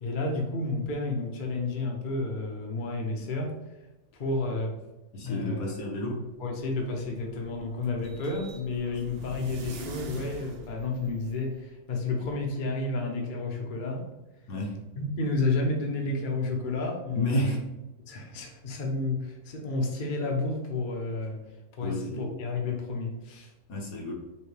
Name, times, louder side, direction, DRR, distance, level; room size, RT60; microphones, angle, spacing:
voice 1, 0.0-3.6 4.1-4.8 5.2-5.8 6.4-14.0 15.0-17.6 18.1-21.4 21.8-23.5, left 3 dB, 45° left, 0 dB, 0.7 m, -31 dB
voice 2, 5.1-6.2 14.5-14.8 17.1-17.6 18.3-18.4 21.8-22.3 23.7-24.1, equal, 70° left, -1 dB, 1.3 m, -31 dB
sound 1, 6.6-11.6, right 2 dB, 75° right, 0.5 m, -44 dB
5.7 x 2.2 x 3.2 m, 1.0 s
omnidirectional pair, 1.6 m